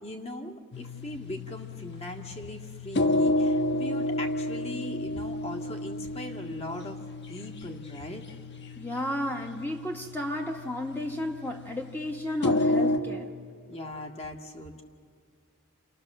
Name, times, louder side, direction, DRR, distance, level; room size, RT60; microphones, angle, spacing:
voice 1, 0.0-7.0 7.3-8.2 13.7-14.8, left 1 dB, 25° left, 2 dB, 1.8 m, -40 dB
sound 1, 0.7-13.0, left 1 dB, 50° left, 1.3 m, -31 dB
voice 2, 8.8-13.3, left 1 dB, 10° left, 1 dB, 1.4 m, -33 dB
30.0 x 27.0 x 6.7 m, 2.1 s
head